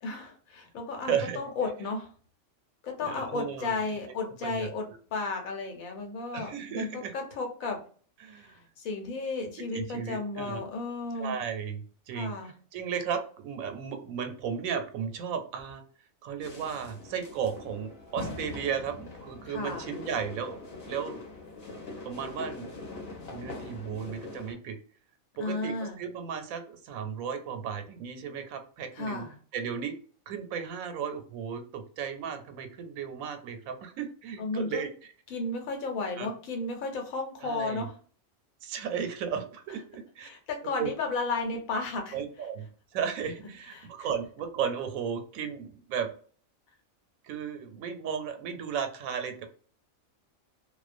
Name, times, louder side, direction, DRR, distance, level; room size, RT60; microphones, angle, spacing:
voice 1, 0.0-2.1 2.8-7.8 8.4-11.3 12.1-12.5 19.4-19.9 25.4-26.0 28.9-29.4 34.4-34.8 35.3-37.9 40.2-42.1 43.7-43.9, left 3 dB, 90° left, 3 dB, 1.2 m, -33 dB
voice 2, 1.1-1.4 3.0-3.7 4.2-4.7 6.3-7.1 8.2-8.5 9.7-10.6 11.2-12.3 12.7-15.8 16.2-21.2 22.0-22.7 23.3-24.8 25.4-29.3 29.5-29.9 30.3-34.9 36.2-36.3 37.4-37.9 38.6-40.3 40.8-40.9 42.1-42.6 42.9-46.1 47.2-49.5, right 7 dB, 85° right, 7 dB, 1.0 m, -34 dB
sound 1, 16.4-24.5, left 3 dB, 50° left, 0.9 m, -43 dB
2.4 x 2.1 x 2.4 m, 0.43 s
omnidirectional pair, 1.4 m